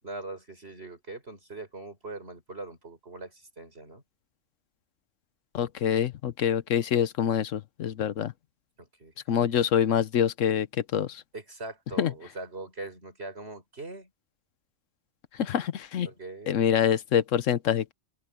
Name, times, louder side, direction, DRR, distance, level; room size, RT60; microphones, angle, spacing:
voice 1, 0.0-4.0 8.8-9.1 11.3-14.1 16.1-16.5, right 2 dB, 55° right, 5.6 m, -41 dB
voice 2, 5.5-8.3 9.3-10.7 10.9-11.2 12.0-12.1 15.4-16.1 16.5-17.9, left 9 dB, 85° left, 1.2 m, -25 dB
open air
omnidirectional pair, 1.3 m